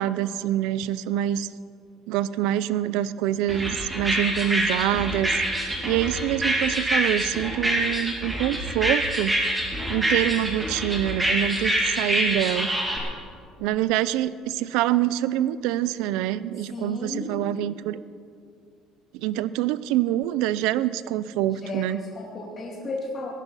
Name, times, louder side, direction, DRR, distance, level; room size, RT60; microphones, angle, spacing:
voice 1, 0.0-1.5 2.1-9.3 9.9-12.7 13.0-13.1 13.6-18.0 19.1-22.0, right 12 dB, 85° right, 16 dB, 0.5 m, -26 dB
sound 1, 3.5-13.0, right 1 dB, 10° right, 2.2 m, -26 dB
voice 2, 16.7-17.3 21.5-23.3, left 2 dB, 25° left, -3 dB, 2.4 m, -34 dB
17.5 x 11.0 x 5.6 m, 2.2 s
cardioid pair, 145°, 0 cm